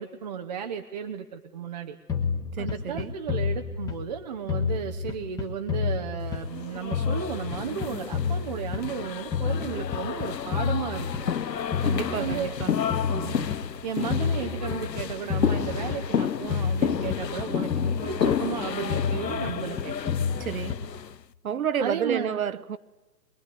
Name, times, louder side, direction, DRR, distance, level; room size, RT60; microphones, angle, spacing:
voice 1, 0.0-2.0 2.6-11.3 12.1-12.6 13.1-13.5 13.8-19.9 21.8-22.4, right 7 dB, 25° right, 0.8 m, -34 dB
sound 1, 2.1-4.2 4.5-6.6 6.9-9.0 9.3-11.4 11.7-13.7 14.1-16.2 16.5-18.6 18.9-21.0, left 6 dB, 5° left, 1.3 m, -30 dB
voice 2, 2.5-3.2 11.8-12.8 20.4-20.8 21.4-22.8, right 7 dB, 55° right, 1.0 m, -30 dB
sound 2, 6.5-21.2, left 8 dB, 80° left, 0.9 m, -31 dB
22.5 x 22.0 x 9.4 m
figure-of-eight pair, 140°, 49 cm